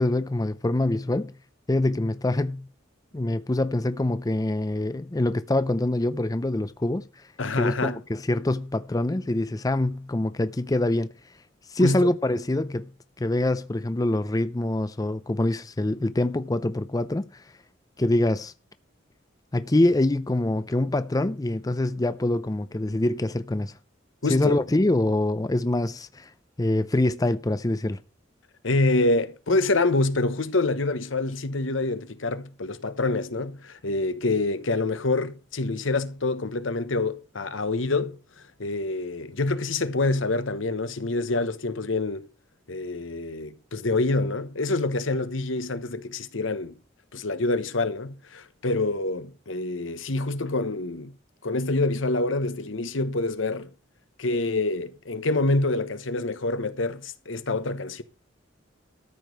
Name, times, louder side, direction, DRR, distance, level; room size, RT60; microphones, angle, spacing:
voice 1, 0.0-1.3 1.7-2.7 3.1-7.2 7.5-11.1 11.7-12.9 13.2-17.4 18.0-18.5 19.5-23.7 24.3-26.3 26.6-28.0, left 1 dB, 20° left, 0.5 m, -25 dB
voice 2, 7.4-8.0 11.8-12.1 24.2-24.6 28.6-38.2 38.6-42.3 42.7-46.8 47.1-51.1 51.4-53.7 54.2-58.0, left 2 dB, 80° left, 1.1 m, -26 dB
13.5 x 5.2 x 7.7 m
head